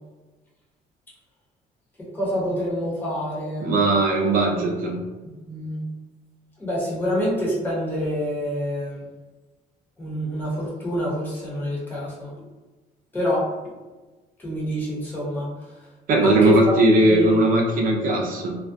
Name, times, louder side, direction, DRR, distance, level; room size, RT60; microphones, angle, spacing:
voice 1, 2.1-3.7 5.4-5.8 6.6-9.0 10.0-12.3 13.1-13.4 14.4-15.5 16.2-16.6 17.1-17.3, equal, 10° left, -7 dB, 1.0 m, -26 dB
voice 2, 3.6-5.0 16.1-18.6, right 1 dB, 55° right, 1 dB, 0.6 m, -19 dB
2.3 x 2.2 x 2.6 m, 1.2 s
cardioid pair, 110°, 17 cm